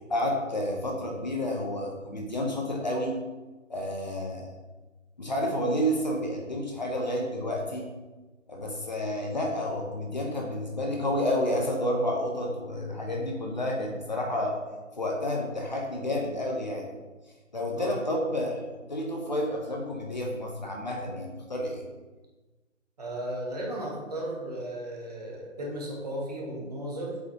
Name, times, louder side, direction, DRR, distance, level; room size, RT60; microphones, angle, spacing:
voice 1, 0.1-3.2 3.7-4.4 5.2-7.9 8.5-14.6 15.0-16.9 17.5-18.6 18.9-21.8, left 1 dB, 35° left, 0 dB, 0.9 m, -30 dB
voice 2, 23.0-27.2, right 1 dB, 30° right, -2 dB, 1.3 m, -35 dB
8.0 x 4.7 x 2.9 m, 1.2 s
figure-of-eight pair, 155°, 39 cm